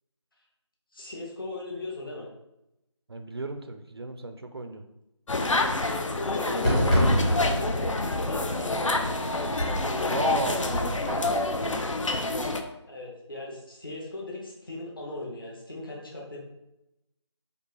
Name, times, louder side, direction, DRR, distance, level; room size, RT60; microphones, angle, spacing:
voice 1, 0.9-2.3 5.9-8.9 12.9-16.4, left 2 dB, 45° left, -3 dB, 1.0 m, -38 dB
voice 2, 3.1-4.8 10.1-11.0, right 2 dB, 55° right, 7 dB, 0.4 m, -34 dB
sound 1, 5.3-12.6, left 2 dB, 90° left, 0.5 m, -28 dB
Fireworks, 6.6-11.7, equal, 10° left, 0.7 m, -28 dB
4.4 x 2.4 x 3.1 m, 0.87 s
figure-of-eight pair, 165°, 16 cm